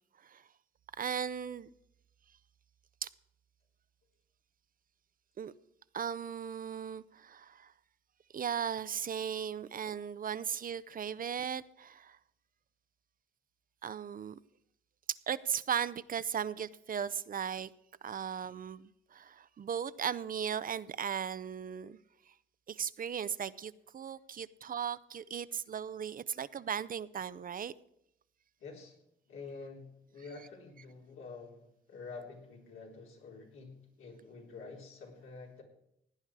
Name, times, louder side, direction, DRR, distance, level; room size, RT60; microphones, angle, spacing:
voice 1, 1.0-1.7 3.0-3.1 5.4-5.5 5.9-7.7 8.3-12.2 13.8-14.4 15.1-17.7 18.0-22.0 22.7-27.7, right 8 dB, 45° right, 0.5 m, -37 dB
voice 2, 28.6-28.9 29.3-35.6, left 4 dB, 80° left, 3.5 m, -48 dB
17.0 x 9.6 x 4.7 m
cardioid pair, 85°, 21 cm